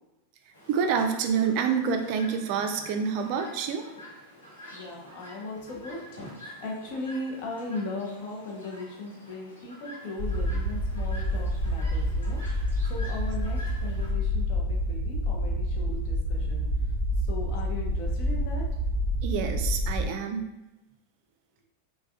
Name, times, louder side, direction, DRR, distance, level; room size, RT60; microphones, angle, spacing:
Chirp tweet, 0.5-14.1, equal, 80° left, 0.8 m, -47 dB
voice 1, 0.7-3.9 19.2-20.5, right 6 dB, 45° right, 6 dB, 0.3 m, -27 dB
voice 2, 4.7-12.4 12.9-16.7 17.2-18.6, left 2 dB, 45° left, -1 dB, 0.6 m, -38 dB
sound 1, 10.2-20.1, equal, 60° left, 1.3 m, -28 dB
3.4 x 2.2 x 2.3 m, 0.98 s
figure-of-eight pair, 90°, 0 cm